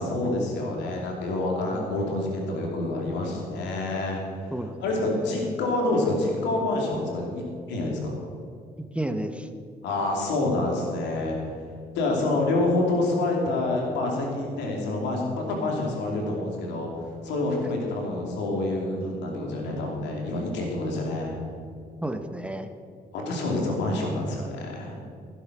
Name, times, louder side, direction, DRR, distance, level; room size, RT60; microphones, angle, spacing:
voice 1, 0.0-4.2 4.8-7.4 7.7-8.1 9.8-11.4 11.9-16.9 17.2-21.3 23.1-25.0, left 2 dB, 90° left, 0 dB, 2.7 m, -27 dB
voice 2, 4.5-5.4 8.8-9.5 12.2-12.3 22.0-22.7, right 1 dB, 5° right, 8 dB, 1.0 m, -33 dB
15.0 x 8.0 x 6.1 m, 2.3 s
supercardioid pair, 60°, 18 cm